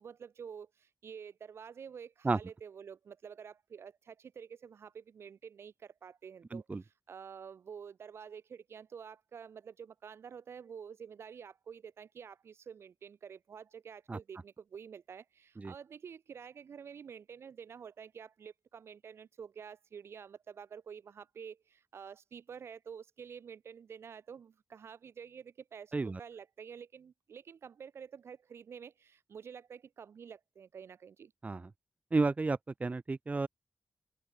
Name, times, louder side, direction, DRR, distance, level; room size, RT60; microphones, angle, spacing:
voice 1, 0.0-31.3, right 7 dB, 85° right, 5.4 m, -49 dB
voice 2, 6.5-6.8 14.1-14.2 15.6-15.7 25.9-26.2 31.4-31.7 32.1-33.5, right 3 dB, 35° right, 0.7 m, -32 dB
open air
cardioid pair, 75°, 4 cm